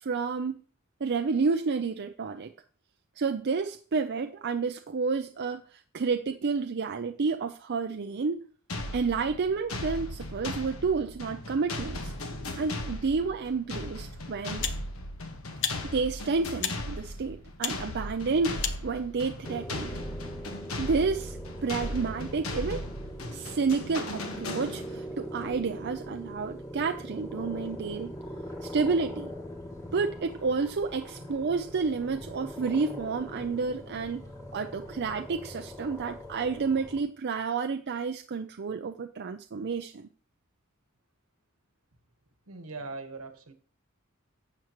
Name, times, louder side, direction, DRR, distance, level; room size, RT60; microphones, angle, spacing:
voice 1, 0.0-0.6 1.0-2.5 3.2-8.4 8.9-12.1 12.6-14.7 15.8-20.0 20.8-22.8 23.3-28.1 28.6-29.3 29.9-34.3 34.5-40.1, right 4 dB, 50° right, 6 dB, 0.5 m, -30 dB
sound 1, 8.7-25.1, left 1 dB, 75° left, 1.4 m, -37 dB
sound 2, 13.7-13.8 14.6-14.8 15.6-15.8 16.6-16.8 17.6-17.8 18.6-18.8, left 8 dB, 60° left, 0.8 m, -32 dB
sound 3, 19.4-37.0, equal, 15° left, 1.7 m, -42 dB
voice 2, 42.5-43.5, right 3 dB, 80° right, 7 dB, 1.4 m, -40 dB
11.5 x 7.8 x 3.0 m, 0.43 s
head